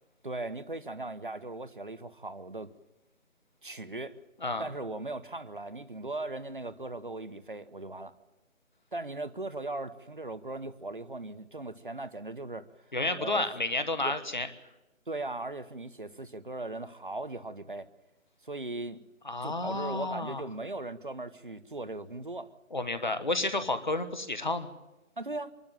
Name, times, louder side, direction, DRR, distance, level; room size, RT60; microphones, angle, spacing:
voice 1, 0.2-2.7 3.6-4.2 4.6-8.1 8.9-12.7 13.2-13.5 14.0-14.2 15.1-17.9 18.4-19.0 19.4-22.5 25.2-25.5, right 2 dB, 40° right, 13 dB, 0.9 m, -38 dB
voice 2, 12.9-14.5 19.2-20.4 22.7-24.7, left 2 dB, 35° left, 10 dB, 1.3 m, -31 dB
25.5 x 12.5 x 9.1 m, 1.0 s
figure-of-eight pair, 175°, 40 cm